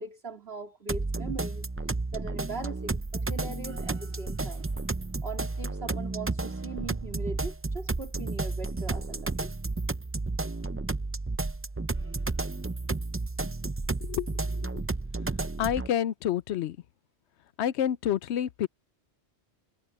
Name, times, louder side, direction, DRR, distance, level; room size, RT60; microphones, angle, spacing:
voice 1, 0.0-1.7 2.1-4.7 5.2-9.7, right 3 dB, 65° right, 3.1 m, -40 dB
sound 1, 0.9-15.9, right 3 dB, 25° right, 0.3 m, -32 dB
voice 2, 14.0-14.8 15.6-16.8 17.6-18.7, left 10 dB, 85° left, 0.9 m, -29 dB
omnidirectional pair, 1.1 m